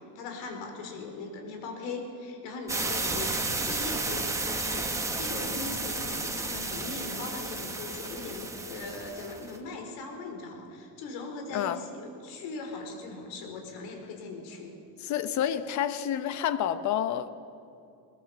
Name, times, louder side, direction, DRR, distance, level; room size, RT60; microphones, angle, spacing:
voice 1, 0.0-14.7, left 3 dB, 80° left, 3 dB, 4.5 m, -40 dB
sound 1, 2.7-9.6, right 2 dB, 5° right, 1.1 m, -32 dB
voice 2, 15.0-17.3, left 10 dB, 40° left, 12 dB, 0.9 m, -29 dB
21.0 x 20.5 x 7.1 m, 2.7 s
cardioid pair, 175°, 42 cm